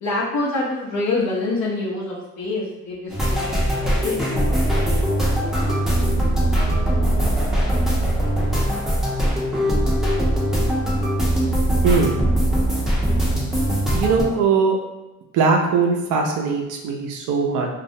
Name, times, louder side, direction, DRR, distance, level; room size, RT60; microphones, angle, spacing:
voice 1, 0.0-5.8, left 2 dB, 65° left, -5 dB, 0.7 m, -27 dB
sound 1, 3.1-14.2, right 1 dB, ahead, 0.6 m, -21 dB
sound 2, 3.5-8.6, equal, 25° left, 0.9 m, -37 dB
voice 2, 11.8-12.2 13.9-14.8 15.3-17.7, right 5 dB, 90° right, 2 dB, 0.5 m, -20 dB
2.3 x 2.0 x 2.6 m, 1.0 s
cardioid pair, 90°, 30 cm